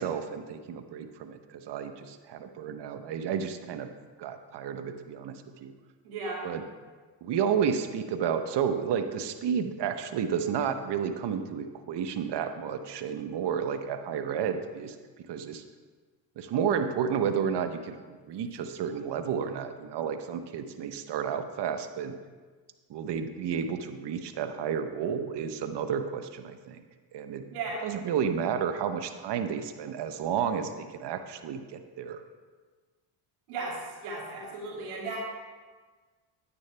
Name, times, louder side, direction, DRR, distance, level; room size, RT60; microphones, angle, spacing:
voice 1, 0.0-3.9 4.2-5.7 6.4-6.6 7.2-14.9 15.3-15.6 16.4-22.1 22.9-26.8 27.1-27.4 27.8-32.2, right 7 dB, 55° right, 8 dB, 1.0 m, -31 dB
voice 2, 6.0-6.4 27.5-27.8 33.5-33.8 34.0-35.2, right 3 dB, 80° right, -3 dB, 2.7 m, -35 dB
9.8 x 9.5 x 3.4 m, 1.4 s
supercardioid pair, 70°, 50 cm